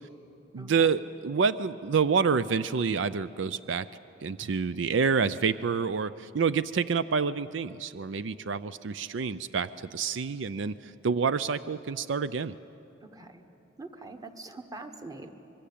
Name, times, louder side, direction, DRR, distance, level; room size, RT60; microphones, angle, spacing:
voice 1, 0.5-3.9 4.2-12.5, right 5 dB, 75° right, 15 dB, 0.5 m, -28 dB
voice 2, 13.0-13.3 13.8-15.3, right 2 dB, 20° right, 7 dB, 1.3 m, -43 dB
25.0 x 22.5 x 8.6 m, 2.8 s
head